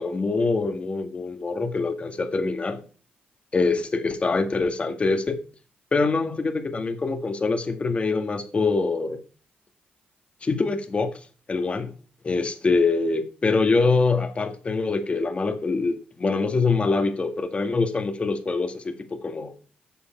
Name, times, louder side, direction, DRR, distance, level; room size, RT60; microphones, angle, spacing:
voice 1, 0.0-2.8 3.5-5.4 5.9-9.2 10.4-11.2 11.5-11.9 12.2-19.6, left 3 dB, 35° left, 1.9 m, -24 dB
10.5 x 6.9 x 4.5 m
cardioid pair, 80°, 4 cm